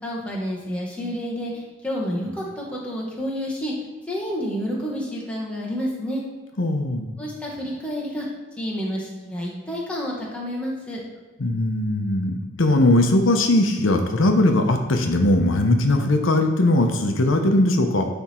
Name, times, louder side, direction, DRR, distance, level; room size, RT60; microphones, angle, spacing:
voice 1, 0.0-3.7 4.1-6.2 7.2-8.3 8.5-11.0, equal, 5° left, -5 dB, 1.5 m, -29 dB
voice 2, 6.6-7.1 11.4-18.1, left 1 dB, 90° left, 4 dB, 0.8 m, -19 dB
9.8 x 3.5 x 4.3 m, 1.3 s
head